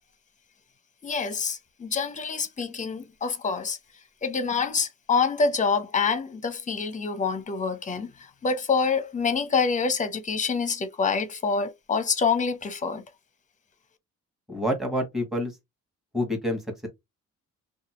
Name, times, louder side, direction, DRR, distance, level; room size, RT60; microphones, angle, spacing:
voice 1, 1.0-3.8 4.2-13.0, left 5 dB, 25° left, 0.6 m, -26 dB
voice 2, 14.5-15.5 16.1-16.9, equal, ahead, 1.2 m, -28 dB
2.7 x 2.3 x 2.9 m
cardioid pair, 90°, 30 cm